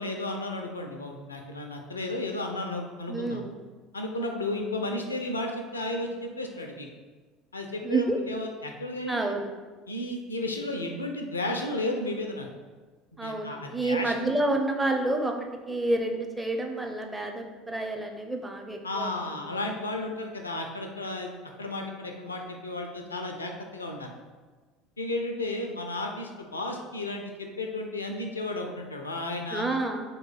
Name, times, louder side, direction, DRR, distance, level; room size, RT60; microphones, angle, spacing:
voice 1, 0.0-3.4 3.9-6.9 7.5-9.2 9.9-12.5 13.1-14.3 18.8-21.3 21.6-24.1 25.0-29.8, left 2 dB, 85° left, 3 dB, 0.4 m, -33 dB
voice 2, 3.1-3.5 7.8-8.2 9.1-9.5 13.2-15.3 15.7-19.4 29.5-30.0, right 2 dB, 10° right, 2 dB, 0.6 m, -29 dB
3.9 x 2.9 x 4.6 m, 1.4 s
figure-of-eight pair, 65°, 0 cm